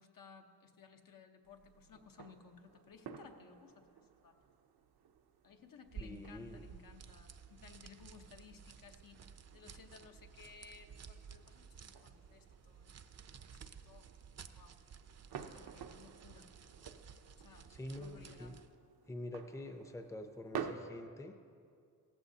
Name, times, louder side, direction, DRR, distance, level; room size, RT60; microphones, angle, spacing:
voice 1, 0.0-4.4 5.4-9.2 9.5-12.9 13.6-14.2 14.6-14.8 15.5-16.5 17.4-17.7 18.0-18.6, left 6 dB, 60° left, 4 dB, 1.1 m, -58 dB
sound 1, 1.4-20.7, right 7 dB, 80° right, 0.8 m, -53 dB
sound 2, 5.9-18.7, right 6 dB, 45° right, 0.6 m, -54 dB
voice 2, 6.0-6.6 17.7-18.5 19.1-21.3, left 1 dB, 10° left, 6 dB, 0.7 m, -46 dB
16.5 x 14.5 x 2.8 m, 2.3 s
cardioid pair, 90°, 37 cm